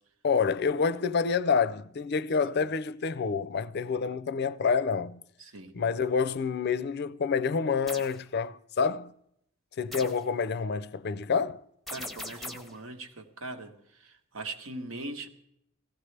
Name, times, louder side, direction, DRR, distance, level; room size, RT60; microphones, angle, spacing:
voice 1, 0.2-5.2 5.7-9.1 9.8-11.6, left 5 dB, 55° left, 0.4 m, -28 dB
voice 2, 5.4-5.7 11.9-15.3, right 2 dB, 85° right, 1.2 m, -41 dB
sound 1, 7.9-8.2 9.9-10.3 11.9-12.8, left 1 dB, ahead, 0.6 m, -40 dB
17.0 x 15.0 x 3.3 m
head